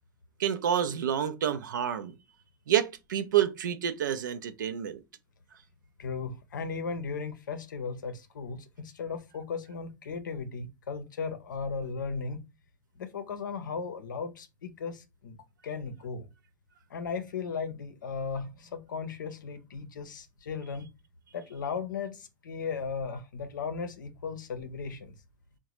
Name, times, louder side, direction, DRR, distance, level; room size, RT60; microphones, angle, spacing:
voice 1, 0.4-2.1 2.7-5.0, right 10 dB, 75° right, 0.4 m, -28 dB
voice 2, 6.0-12.4 13.0-15.4 15.6-16.3 16.9-20.9 21.3-25.1, left 5 dB, 80° left, 0.6 m, -36 dB
3.8 x 2.2 x 2.9 m
hypercardioid pair, 90°, 10 cm